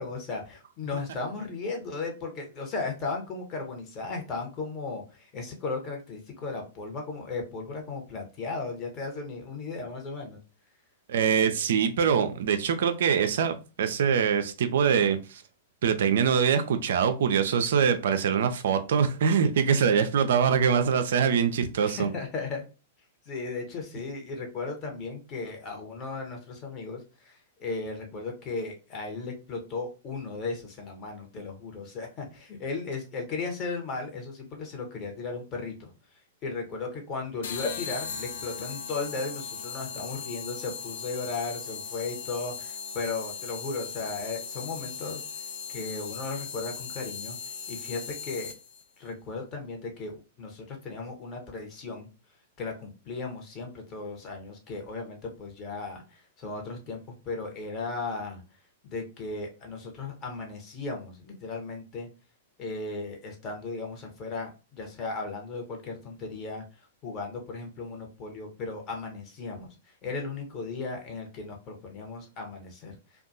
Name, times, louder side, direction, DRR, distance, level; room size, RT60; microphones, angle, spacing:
voice 1, 0.0-10.4 21.8-22.7 23.3-35.9 36.4-45.2 45.7-47.4 47.7-48.5 49.0-52.1 52.6-58.4 58.8-62.1 62.6-66.6 67.0-69.7 70.0-73.0, left 3 dB, 30° left, 0.9 m, -36 dB
voice 2, 11.1-15.4 15.8-22.1, right 7 dB, 60° right, 0.3 m, -24 dB
sound 1, 37.4-48.8, left 6 dB, 60° left, 0.4 m, -38 dB
2.6 x 2.3 x 2.6 m
figure-of-eight pair, 100°, 0 cm